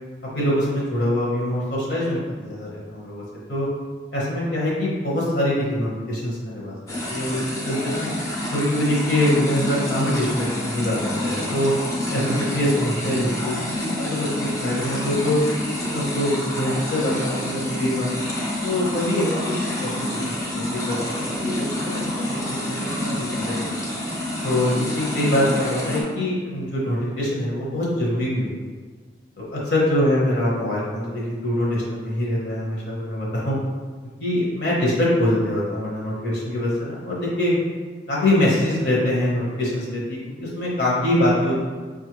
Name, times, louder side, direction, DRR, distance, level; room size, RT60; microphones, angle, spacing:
voice 1, 0.3-3.2 3.5-3.7 4.1-8.1 8.5-11.7 12.1-15.4 15.9-18.1 18.6-23.7 24.4-28.8 29.4-33.6 34.2-37.6 38.1-41.6, left 1 dB, 60° left, -5 dB, 0.9 m, -24 dB
sound 1, 6.9-26.0, left 1 dB, 15° left, 0.5 m, -28 dB
5.3 x 2.4 x 2.9 m, 1.4 s
head